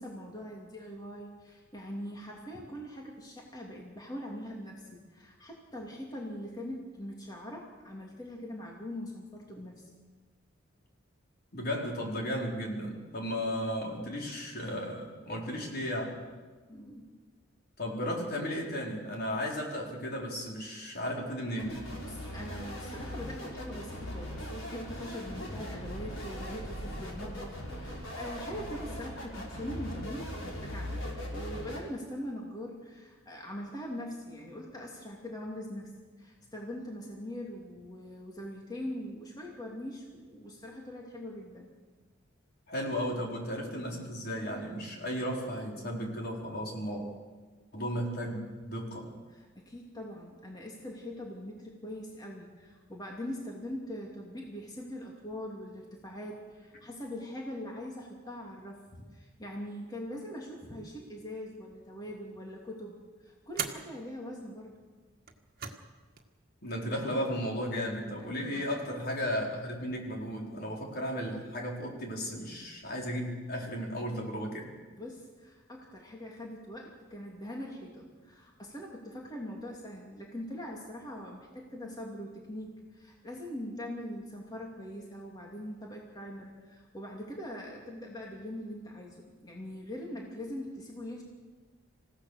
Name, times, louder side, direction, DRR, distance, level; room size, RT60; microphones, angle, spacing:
voice 1, 0.0-9.9 16.7-17.1 22.0-31.1 31.3-35.9 36.2-41.7 49.3-64.8 68.2-68.7 74.9-91.2, left 1 dB, 20° left, -1 dB, 2.8 m, -42 dB
voice 2, 11.5-16.1 17.8-21.8 42.7-47.0 47.7-49.1 66.6-74.7, equal, 55° left, -1 dB, 4.6 m, -35 dB
Uncut Synth, 21.6-31.8, equal, 75° left, 5.9 m, -39 dB
sound 1, 62.0-62.4 63.5-63.9 65.2-65.9 66.2-66.3 67.4-67.9, right 8 dB, 50° right, 1.8 m, -40 dB
27.5 x 16.5 x 6.6 m, 1.4 s
head